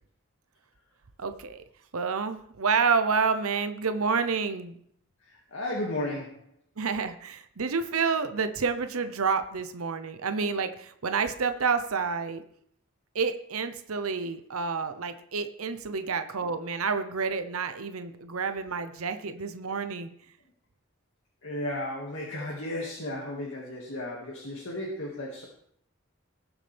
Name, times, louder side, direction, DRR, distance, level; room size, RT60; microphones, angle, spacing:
voice 1, 1.2-1.6 1.9-4.7 6.8-12.4 13.1-20.1, right 5 dB, 90° right, 9 dB, 0.8 m, -29 dB
voice 2, 5.2-6.5 21.4-25.4, left 1 dB, 70° left, -3 dB, 2.0 m, -34 dB
18.5 x 7.2 x 3.5 m, 0.67 s
head